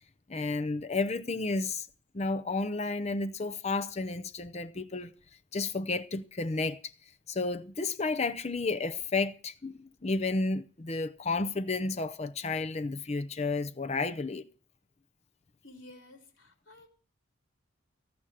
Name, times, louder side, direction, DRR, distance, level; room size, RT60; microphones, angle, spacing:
voice 1, 0.3-1.9 2.1-5.1 5.5-6.8 7.3-14.4, left 3 dB, 30° left, 0.6 m, -32 dB
voice 2, 15.6-16.9, left 2 dB, 65° left, 3.3 m, -52 dB
15.0 x 6.0 x 10.0 m
head